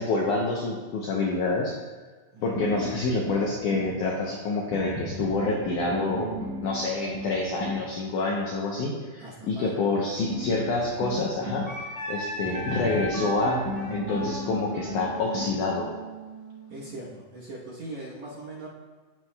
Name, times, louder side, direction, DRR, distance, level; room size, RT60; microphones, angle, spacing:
voice 1, 0.0-1.8 2.4-6.3 6.6-13.6 13.9-15.9, left 3 dB, 80° left, -2 dB, 1.8 m, -27 dB
voice 2, 2.3-2.7 9.2-9.7 12.3-12.5 16.7-18.7, right 2 dB, 65° right, -6 dB, 1.9 m, -40 dB
sound 1, 2.6-4.0 4.7-7.9 10.3-11.7 12.4-15.6, equal, 25° right, 0.6 m, -35 dB
Wind instrument woodwind instrument, 11.7-17.0, equal, 30° left, 1.7 m, -37 dB
15.0 x 6.0 x 2.3 m, 1.3 s
omnidirectional pair, 4.6 m